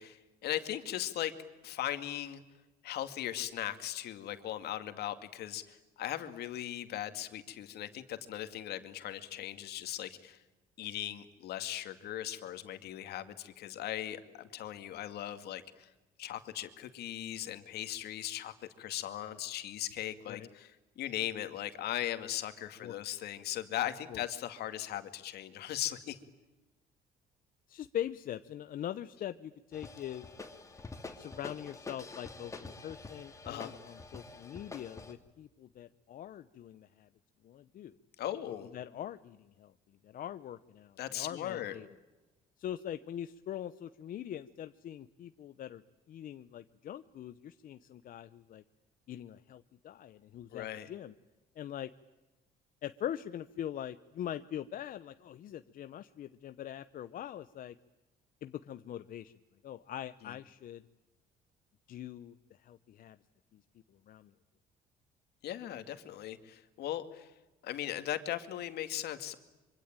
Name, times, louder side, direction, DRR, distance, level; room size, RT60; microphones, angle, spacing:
voice 1, 0.0-1.3 1.6-2.4 2.8-10.4 10.8-15.9 16.2-26.2 33.4-33.7 38.2-38.7 41.0-41.8 50.5-50.9 60.2-60.3 65.4-67.3 67.6-69.4, left 12 dB, 70° left, 9 dB, 2.3 m, -38 dB
voice 2, 27.7-30.3 31.2-37.1 37.4-38.0 38.7-39.7 40.0-41.9 42.6-48.6 49.1-51.1 51.6-51.9 52.8-57.8 58.4-59.3 59.6-60.8 61.9-63.2 63.5-63.6 64.1-64.3, left 11 dB, 55° left, 11 dB, 0.9 m, -42 dB
sound 1, 29.7-35.1, left 3 dB, 20° left, 3.1 m, -47 dB
25.5 x 25.0 x 9.0 m, 1.1 s
cardioid pair, 110°, 17 cm